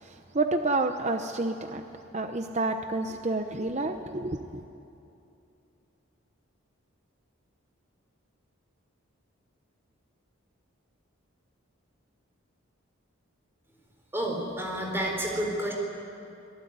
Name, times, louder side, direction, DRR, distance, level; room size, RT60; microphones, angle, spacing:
voice 1, 0.0-1.8 2.1-4.6, right 2 dB, 30° right, 6 dB, 0.8 m, -29 dB
voice 2, 14.1-15.7, right 1 dB, 10° right, 0 dB, 4.2 m, -30 dB
25.0 x 19.5 x 9.5 m, 2.7 s
head